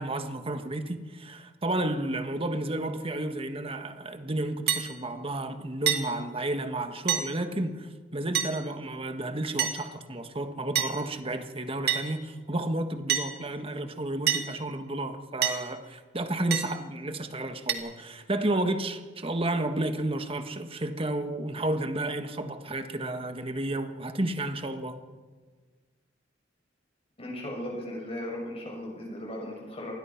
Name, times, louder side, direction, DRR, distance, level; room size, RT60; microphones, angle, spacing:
voice 1, 0.0-25.0, right 1 dB, 30° right, 7 dB, 1.6 m, -32 dB
sound 1, 4.7-4.9 5.9-6.0 7.1-7.3 8.3-8.5 9.6-9.8 10.7-10.9 11.9-12.0 13.1-13.3 14.3-14.4 15.4-15.6 16.5-16.7 17.7-17.8, right 9 dB, 55° right, 2.2 m, -26 dB
voice 2, 27.2-30.0, left 1 dB, 30° left, -1 dB, 7.0 m, -37 dB
27.0 x 20.5 x 6.0 m, 1.5 s
head